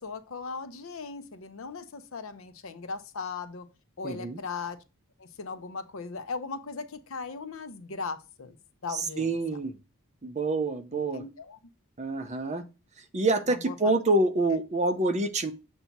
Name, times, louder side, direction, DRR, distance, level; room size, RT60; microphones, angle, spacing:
voice 1, 0.0-3.7 4.0-4.8 5.2-8.6 8.8-9.3 10.9-11.6 13.5-13.9 14.5-14.6, left 4 dB, 65° left, 0.6 m, -38 dB
voice 2, 4.0-4.4 8.9-9.8 10.2-11.2 12.0-12.6 13.1-15.5, right 2 dB, 30° right, 0.7 m, -27 dB
7.0 x 2.7 x 5.8 m
head